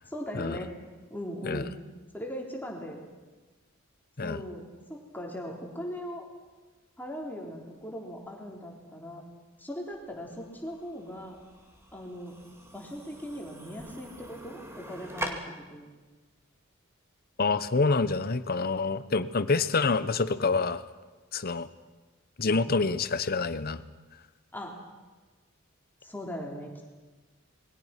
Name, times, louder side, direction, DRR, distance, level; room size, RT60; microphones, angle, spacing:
voice 1, 0.1-0.7 1.1-1.7 2.1-3.0 4.2-6.3 7.0-9.2 9.6-11.4 11.9-12.3 12.7-15.9 22.5-22.7 24.5-24.8 26.0-26.8, equal, 10° left, 0 dB, 3.5 m, -39 dB
sound 1, 9.9-15.3, right 1 dB, 15° right, 2.3 m, -43 dB
voice 2, 17.4-20.8 21.3-21.7 22.4-23.8, left 4 dB, 45° left, 13 dB, 0.9 m, -27 dB
27.0 x 21.0 x 5.9 m, 1.3 s
head